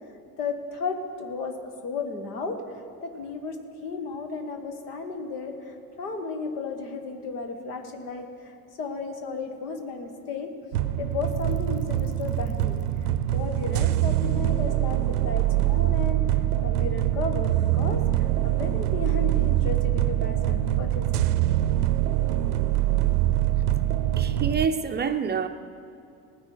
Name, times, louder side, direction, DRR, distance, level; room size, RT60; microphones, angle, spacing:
voice 1, 0.4-10.5 11.0-16.2 16.6-21.2, left 4 dB, 75° left, 5 dB, 1.5 m, -34 dB
sound 1, 10.7-24.7, right 13 dB, 80° right, 0.6 m, -24 dB
voice 2, 24.2-25.5, right 6 dB, 25° right, 8 dB, 0.5 m, -27 dB
18.5 x 9.9 x 4.6 m, 2.7 s
figure-of-eight pair, 65°, 46 cm